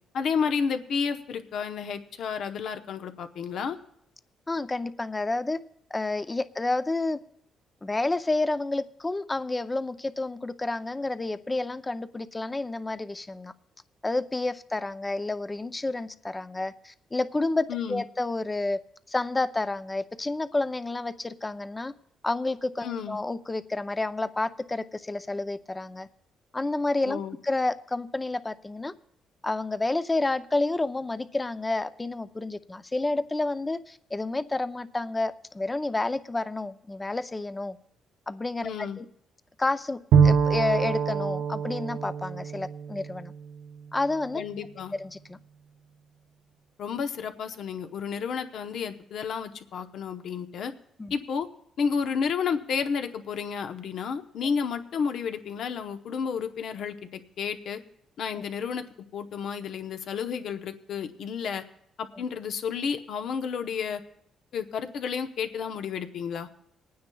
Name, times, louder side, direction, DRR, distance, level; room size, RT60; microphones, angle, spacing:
voice 1, 0.1-3.8 17.7-18.0 22.8-23.2 27.0-27.4 38.6-39.0 44.3-44.9 46.8-50.7 51.1-51.5 51.8-57.8 58.2-58.8 59.1-61.6 62.0-64.0 64.5-66.5, left 6 dB, 70° left, 0.8 m, -31 dB
voice 2, 4.5-5.6 5.9-7.2 7.8-13.5 14.0-18.8 19.1-21.9 22.2-26.1 26.5-28.9 29.4-37.8 38.3-39.0 39.6-43.3 43.9-44.4 45.0-45.4 51.0-51.1, left 2 dB, 20° left, 0.5 m, -30 dB
Bowed string instrument, 40.1-43.8, right 6 dB, 75° right, 0.6 m, -25 dB
27.0 x 9.4 x 2.3 m
cardioid pair, 90°, 0 cm